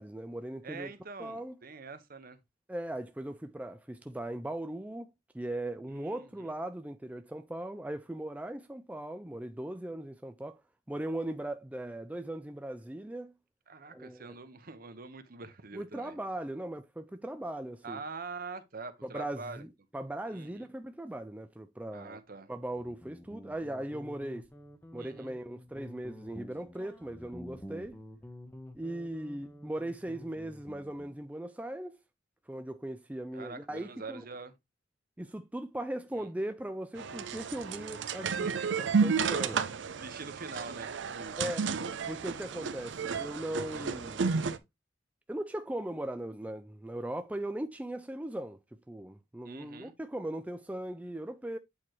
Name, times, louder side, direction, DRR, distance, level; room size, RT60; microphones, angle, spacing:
voice 1, 0.0-0.9 1.2-1.6 2.7-5.1 5.3-10.6 10.9-13.3 13.9-14.4 15.7-18.0 19.0-22.2 22.5-24.5 24.9-28.0 28.7-32.0 32.5-34.2 35.2-38.5 38.8-39.6 41.4-41.7 42.1-44.3 45.3-48.6 48.9-51.6, right 1 dB, 10° right, 0.3 m, -39 dB
voice 2, 0.6-2.4 5.9-6.5 13.7-16.2 17.8-19.7 20.3-20.7 21.9-22.5 25.0-25.3 33.3-34.5 36.1-36.3 38.3-39.2 40.0-41.3 43.7-43.9 49.4-49.9, right 4 dB, 50° right, 0.9 m, -45 dB
Guitar, 22.7-31.2, equal, 10° left, 0.8 m, -49 dB
sound 1, 37.0-44.6, right 5 dB, 65° right, 0.5 m, -32 dB
8.4 x 4.5 x 3.1 m
head